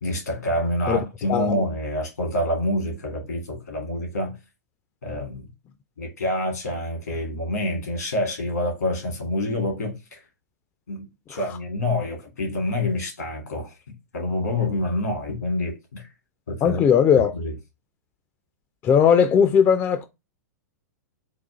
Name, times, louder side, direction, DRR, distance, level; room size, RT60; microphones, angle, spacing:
voice 1, 0.0-4.4 5.0-5.5 6.0-10.2 10.9-13.7 14.1-16.0 16.5-16.8 17.1-17.6, left 1 dB, 75° left, 1.7 m, -27 dB
voice 2, 16.6-17.3 18.8-20.0, left 7 dB, 25° left, 0.3 m, -17 dB
4.0 x 2.4 x 3.7 m
figure-of-eight pair, 105°, 9 cm